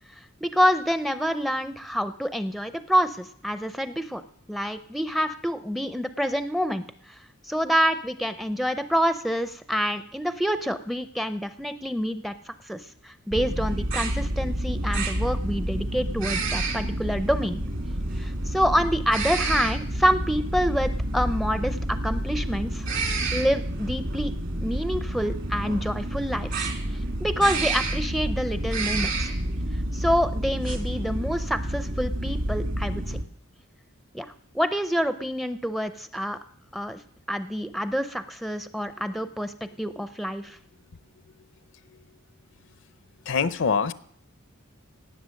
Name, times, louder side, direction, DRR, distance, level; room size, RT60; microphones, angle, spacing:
voice 1, 0.4-4.2 4.5-6.8 7.5-17.6 18.2-22.9 23.3-24.3 24.6-26.7 27.2-29.3 29.9-33.2 34.1-36.4 36.7-37.0 37.3-40.6, equal, ahead, 10 dB, 0.5 m, -27 dB
sound 1, 13.3-33.2, right 1 dB, 60° right, 2.3 m, -29 dB
voice 2, 43.3-43.9, left 5 dB, 60° left, 15 dB, 0.6 m, -24 dB
18.0 x 7.7 x 6.4 m, 0.64 s
head